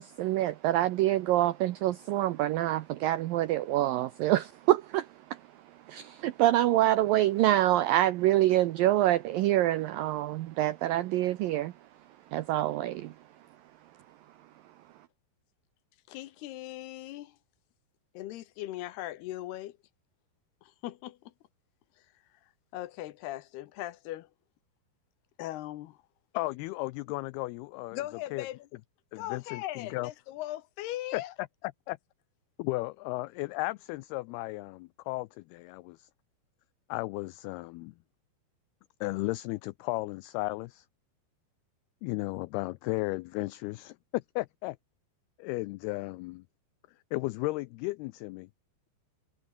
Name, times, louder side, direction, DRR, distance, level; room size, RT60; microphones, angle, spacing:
voice 1, 0.0-5.4 5.9-11.7 12.3-13.1, right 14 dB, 90° right, 2.0 m, -26 dB
voice 2, 16.1-17.4 18.1-19.8 20.6-21.2 22.7-24.3 25.4-26.0 27.9-28.7 29.1-31.3, left 15 dB, 75° left, 2.8 m, -39 dB
voice 3, 26.3-28.0 28.3-28.5 29.1-30.1 31.1-31.2 31.9-32.0 32.6-36.1 36.9-37.9 39.0-40.9 42.0-44.8 45.4-46.4 47.1-48.5, left 21 dB, 90° left, 2.2 m, -34 dB
omnidirectional pair, 5.1 m